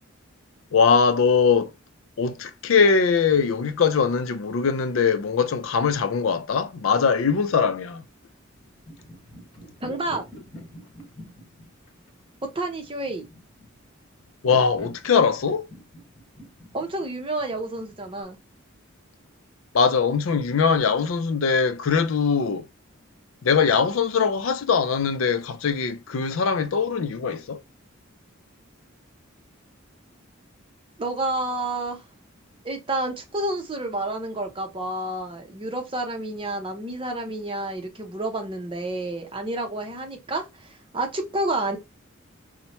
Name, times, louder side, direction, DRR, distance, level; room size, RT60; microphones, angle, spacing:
voice 1, 0.7-1.7 2.2-8.0 14.4-15.7 19.7-22.7 23.4-27.6, left 5 dB, 85° left, 0.4 m, -21 dB
sound 1, 8.5-18.2, equal, 25° left, 1.4 m, -46 dB
voice 2, 9.8-10.2 12.5-13.3 16.7-18.4 31.0-32.0 32.6-41.8, right 2 dB, 25° right, 0.7 m, -29 dB
4.2 x 2.1 x 2.9 m
head